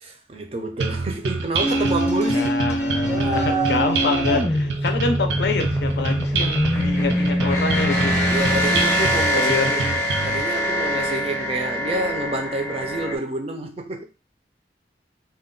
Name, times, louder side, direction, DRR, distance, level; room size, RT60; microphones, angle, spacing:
voice 1, 0.0-2.7 3.1-4.5 8.3-14.0, right 2 dB, 35° right, 0.4 m, -28 dB
sound 1, 0.8-10.4, right 3 dB, 90° right, 0.5 m, -27 dB
sound 2, 1.6-13.2, equal, 15° left, 0.5 m, -23 dB
voice 2, 2.3-8.2 9.1-9.7, left 4 dB, 70° left, 0.4 m, -26 dB
2.2 x 2.2 x 3.6 m
head